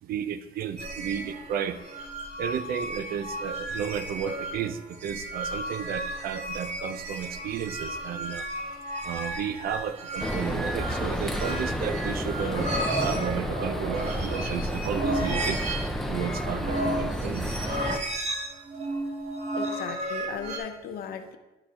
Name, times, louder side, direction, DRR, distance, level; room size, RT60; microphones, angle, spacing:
voice 1, 0.0-1.9 2.4-8.7 9.0-12.7 13.0-15.6 16.1-17.5, right 8 dB, 60° right, 11 dB, 0.6 m, -33 dB
sound 1, 0.8-20.6, right 1 dB, 40° right, 1.6 m, -34 dB
sound 2, 10.2-18.0, equal, ahead, 0.6 m, -31 dB
voice 2, 19.6-21.4, left 7 dB, 65° left, 7 dB, 0.9 m, -37 dB
11.5 x 4.8 x 3.7 m, 1.0 s
cardioid pair, 110°, 17 cm